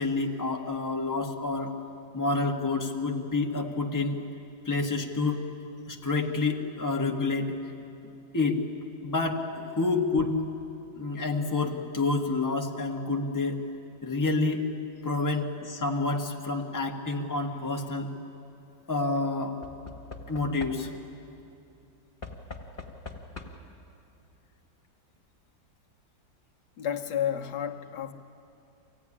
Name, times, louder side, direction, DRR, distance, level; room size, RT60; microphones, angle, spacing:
voice 1, 0.0-1.8 2.1-4.2 4.6-5.4 5.9-7.6 8.3-8.6 9.0-10.3 11.0-13.6 14.0-14.6 15.0-18.1 18.9-19.6 20.3-20.9, left 3 dB, 10° left, 0 dB, 1.3 m, -28 dB
Knock / Wood, 17.5-17.9 19.6-21.2 22.2-23.8 24.8-24.9 25.2-25.3, left 3 dB, 25° left, 1.8 m, -44 dB
voice 2, 26.8-28.1, left 9 dB, 65° left, 3 dB, 1.6 m, -31 dB
24.5 x 16.5 x 9.9 m, 2.7 s
omnidirectional pair, 2.1 m